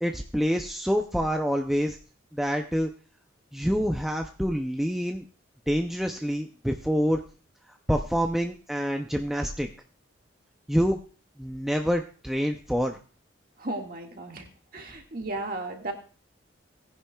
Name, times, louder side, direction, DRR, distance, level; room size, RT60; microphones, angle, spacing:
voice 1, 0.0-2.0 2.3-2.9 3.5-5.2 5.7-7.2 7.9-9.7 10.7-11.0 11.4-13.0, equal, ahead, 3 dB, 0.5 m, -26 dB
voice 2, 13.6-14.5 14.7-15.9, right 2 dB, 45° right, 2 dB, 1.8 m, -34 dB
18.5 x 10.0 x 2.3 m, 0.38 s
head